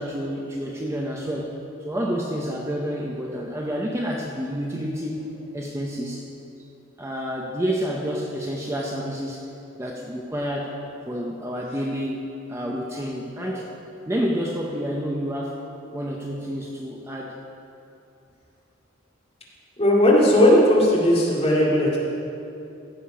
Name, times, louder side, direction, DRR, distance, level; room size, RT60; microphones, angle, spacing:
voice 1, 0.0-1.5 1.8-5.3 5.5-6.3 7.0-9.5 9.8-10.7 11.1-12.2 12.5-13.7 14.1-15.6 15.9-17.4, equal, 15° right, -2 dB, 0.7 m, -29 dB
voice 2, 19.8-22.0, left 1 dB, 30° left, -5 dB, 2.2 m, -17 dB
16.0 x 6.7 x 5.0 m, 2.7 s
head